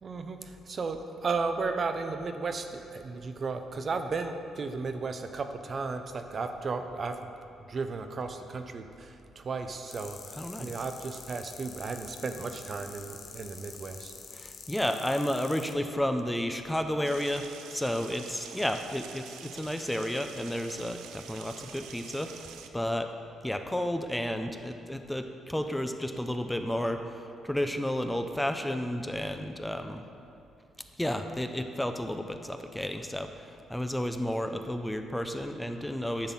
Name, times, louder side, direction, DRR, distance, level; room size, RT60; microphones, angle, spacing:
voice 1, 0.0-7.3 7.7-14.1, right 4 dB, 45° right, 7 dB, 0.6 m, -34 dB
sound 1, 9.9-15.7, left 5 dB, 55° left, 0.8 m, -47 dB
voice 2, 10.4-10.7 14.3-23.1 23.4-30.1 31.0-36.3, left 1 dB, 5° left, 6 dB, 0.5 m, -32 dB
sound 2, 17.0-22.7, right 8 dB, 90° right, 0.5 m, -47 dB
10.5 x 4.0 x 7.4 m, 2.6 s
cardioid pair, 90°, 0 cm